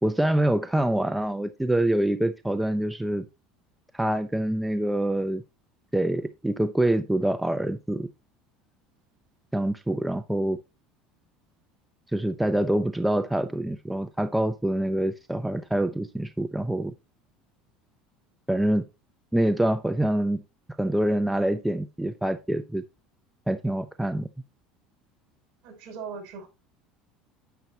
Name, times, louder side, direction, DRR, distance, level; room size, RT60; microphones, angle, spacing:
voice 1, 0.0-3.2 3.9-5.4 5.9-8.1 9.5-10.6 12.1-16.9 18.5-18.8 19.3-20.4 20.8-22.8 23.5-24.3, right 1 dB, 5° right, 0.6 m, -25 dB
voice 2, 25.6-26.5, right 5 dB, 60° right, 5.4 m, -39 dB
9.3 x 8.4 x 2.8 m
supercardioid pair, 115°, 0 cm